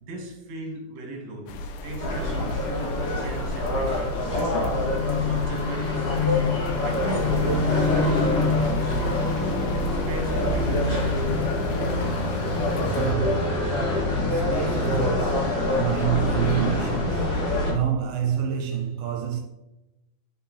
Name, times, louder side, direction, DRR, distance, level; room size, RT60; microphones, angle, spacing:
voice 1, 0.0-2.5 3.2-4.8 5.3-6.4 6.8-9.5 9.9-11.5, right 3 dB, 55° right, 2.9 m, -36 dB
sound 1, 1.5-13.1, left 1 dB, 80° left, 2.0 m, -35 dB
sound 2, 2.0-17.7, left 2 dB, 45° left, 2.8 m, -25 dB
voice 2, 12.8-13.8 14.3-19.4, right 9 dB, 80° right, 2.4 m, -28 dB
9.4 x 6.4 x 3.2 m
omnidirectional pair, 4.1 m